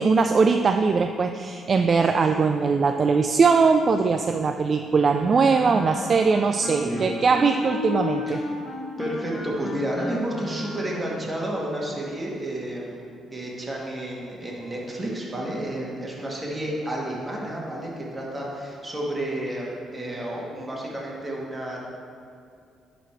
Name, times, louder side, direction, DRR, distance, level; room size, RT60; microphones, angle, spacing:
voice 1, 0.0-8.4, right 4 dB, 45° right, 6 dB, 0.3 m, -21 dB
Wind instrument woodwind instrument, 5.0-11.3, left 3 dB, 40° left, 1.3 m, -34 dB
voice 2, 6.6-7.2 8.3-8.4 9.0-21.8, right 1 dB, 20° right, -3 dB, 1.9 m, -31 dB
11.0 x 4.1 x 4.6 m, 2.4 s
cardioid pair, 90°, 0 cm